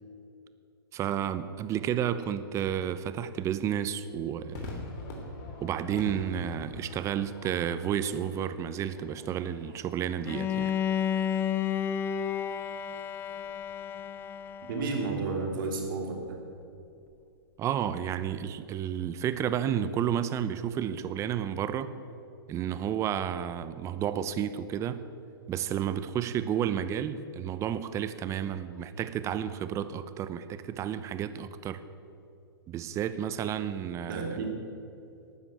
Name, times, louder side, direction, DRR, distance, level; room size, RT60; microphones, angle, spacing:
voice 1, 0.9-4.7 5.6-10.8 17.6-21.9 22.5-25.0 25.5-31.8 32.7-34.4, right 9 dB, 25° right, 13 dB, 0.7 m, -31 dB
Crowd / Fireworks, 4.5-11.1, left 2 dB, 45° left, 3.0 m, -44 dB
Bowed string instrument, 10.2-15.2, left 8 dB, 15° left, 0.4 m, -31 dB
voice 2, 14.7-16.4 34.1-34.5, right 3 dB, 55° right, 2 dB, 3.0 m, -32 dB
12.5 x 9.4 x 8.1 m, 2.7 s
hypercardioid pair, 125°, 13 cm